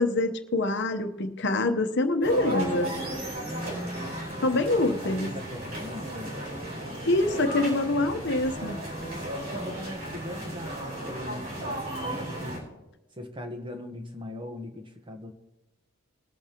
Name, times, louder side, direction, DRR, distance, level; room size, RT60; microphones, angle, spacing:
voice 1, 0.0-2.9 4.4-5.4 7.0-8.9, left 2 dB, 50° left, 8 dB, 0.9 m, -25 dB
sound 1, 2.2-12.6, right 1 dB, 70° right, 4.4 m, -35 dB
voice 2, 3.3-6.5 9.1-12.7 13.1-15.3, left 1 dB, 20° right, 5 dB, 1.1 m, -40 dB
21.0 x 8.6 x 2.9 m, 0.99 s
head